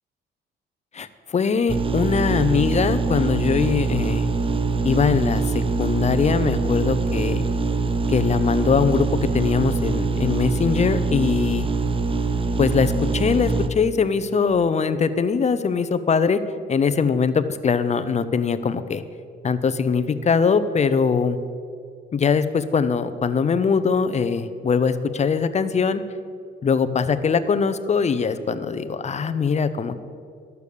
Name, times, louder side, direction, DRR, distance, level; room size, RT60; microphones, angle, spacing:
voice 1, 0.9-4.3 4.8-7.4 8.1-9.1 9.3-11.7 12.6-16.4 16.7-19.0 19.4-21.4 22.1-26.0 26.6-30.0, left 5 dB, 35° left, 12 dB, 0.7 m, -22 dB
sound 1, 1.7-13.7, right 4 dB, 25° right, 0.7 m, -23 dB
12.5 x 6.9 x 6.7 m, 2.3 s
cardioid pair, 90°, 20 cm